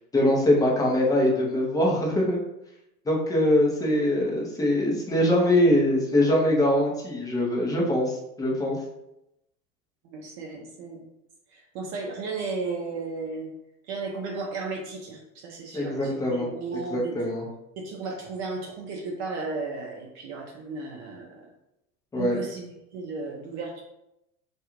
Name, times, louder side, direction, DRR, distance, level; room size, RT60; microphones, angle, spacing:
voice 1, 0.1-2.4 3.1-8.8 15.7-16.5 16.9-17.5 22.1-22.4, left 1 dB, 10° left, -3 dB, 0.5 m, -23 dB
voice 2, 10.0-11.1 11.5-13.5 13.9-17.2 17.8-21.5 22.2-23.8, right 3 dB, 50° right, 0 dB, 0.6 m, -34 dB
2.4 x 2.3 x 3.0 m, 0.86 s
hypercardioid pair, 95°, 45 cm